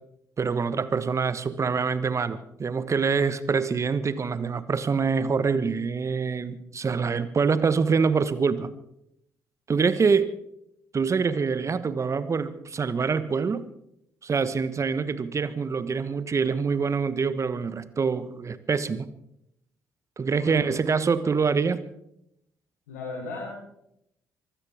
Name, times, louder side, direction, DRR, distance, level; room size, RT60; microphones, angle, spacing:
voice 1, 0.4-8.7 9.7-10.3 10.9-13.7 14.2-19.1 20.2-21.8, right 5 dB, 35° right, 14 dB, 1.3 m, -25 dB
voice 2, 20.3-20.7 22.9-23.5, left 3 dB, 75° left, -5 dB, 4.3 m, -36 dB
24.0 x 16.0 x 3.6 m, 0.76 s
figure-of-eight pair, 45°, 9 cm